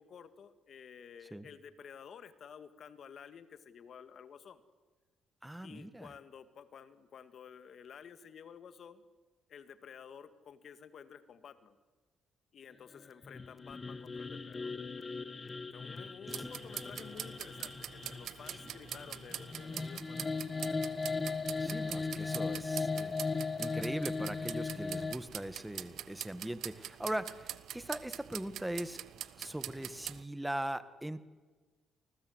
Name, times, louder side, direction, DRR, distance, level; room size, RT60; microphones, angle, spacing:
voice 1, 0.0-4.6 5.6-9.0 9.5-11.8 12.5-14.7 15.7-21.2, left 7 dB, 60° left, 11 dB, 2.0 m, -52 dB
voice 2, 5.4-6.1 16.4-16.5 21.6-23.2 23.6-29.0 29.4-31.2, right 1 dB, 5° right, 13 dB, 1.6 m, -40 dB
sound 1, 13.2-25.2, left 4 dB, 30° left, 1.4 m, -38 dB
sound 2, 16.3-30.2, right 11 dB, 75° right, 1.1 m, -45 dB
28.5 x 20.5 x 8.1 m, 1.3 s
cardioid pair, 90°, 0 cm